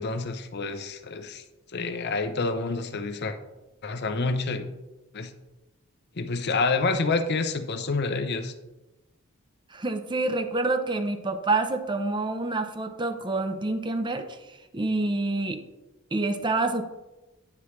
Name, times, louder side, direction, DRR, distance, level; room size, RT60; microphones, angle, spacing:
voice 1, 0.0-1.4 1.7-3.4 3.8-4.7 5.1-5.3 6.2-8.5, left 3 dB, 55° left, 8 dB, 0.7 m, -28 dB
voice 2, 9.7-15.6 16.1-16.8, right 2 dB, 25° right, 8 dB, 0.6 m, -27 dB
9.6 x 7.1 x 3.2 m, 1.0 s
head